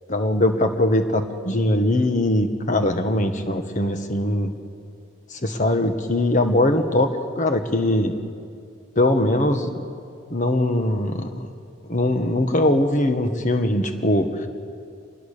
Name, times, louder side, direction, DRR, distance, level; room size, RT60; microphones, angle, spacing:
voice 1, 0.1-4.5 5.3-8.1 8.9-9.8 10.3-11.5 11.9-14.5, left 1 dB, 35° left, 7 dB, 1.5 m, -21 dB
26.0 x 20.0 x 6.8 m, 2.3 s
head